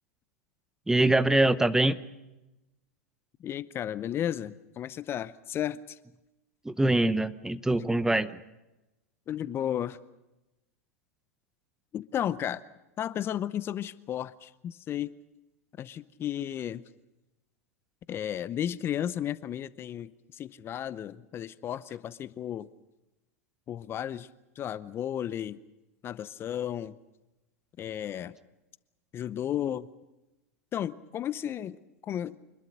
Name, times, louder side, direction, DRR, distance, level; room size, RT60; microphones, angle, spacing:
voice 1, 0.9-2.0 6.6-8.4, right 2 dB, 5° right, 14 dB, 0.8 m, -24 dB
voice 2, 3.4-6.0 9.3-10.0 11.9-12.6 13.0-15.1 15.8-16.8 18.1-22.7 23.7-24.3 24.6-25.6 26.0-27.0 27.8-28.3 29.1-29.9 30.7-31.8 32.0-32.4, left 10 dB, 30° left, 17 dB, 0.7 m, -33 dB
26.0 x 20.5 x 6.6 m, 1.0 s
hypercardioid pair, 100°, 8 cm